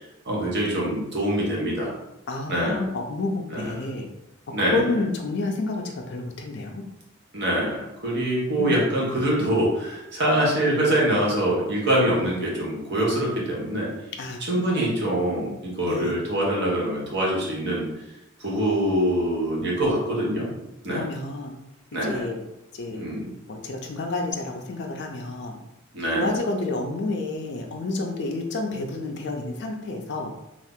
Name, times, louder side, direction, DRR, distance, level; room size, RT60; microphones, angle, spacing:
voice 1, 0.2-1.9 2.5-2.8 3.5-3.8 4.5-4.9 7.3-13.9 14.4-17.9 18.4-20.5 20.8-21.1 21.9-22.3 22.9-23.3 25.9-26.3, right 1 dB, 50° right, -3 dB, 0.9 m, -24 dB
voice 2, 2.3-4.1 4.7-6.8 8.6-8.8 14.2-14.4 15.9-16.1 20.9-21.5 22.0-22.4 22.7-23.1 23.5-25.6 26.2-30.3, left 2 dB, 55° left, 2 dB, 0.4 m, -29 dB
2.7 x 2.4 x 3.5 m, 0.89 s
head